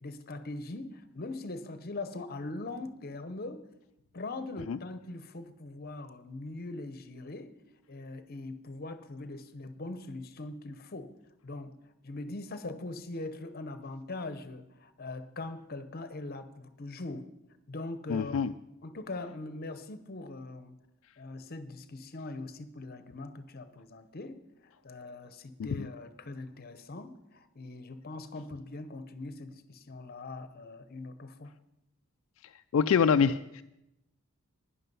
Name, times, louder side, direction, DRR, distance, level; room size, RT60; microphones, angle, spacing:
voice 1, 0.0-3.6 4.1-7.5 7.9-11.1 11.4-11.7 12.0-17.3 17.7-18.6 18.8-20.8 21.2-24.4 24.8-31.5, left 2 dB, 45° left, 11 dB, 0.8 m, -41 dB
voice 2, 18.1-18.5 25.7-25.9 32.7-33.6, left 6 dB, 70° left, 9 dB, 0.3 m, -25 dB
11.0 x 10.0 x 5.5 m, 0.90 s
head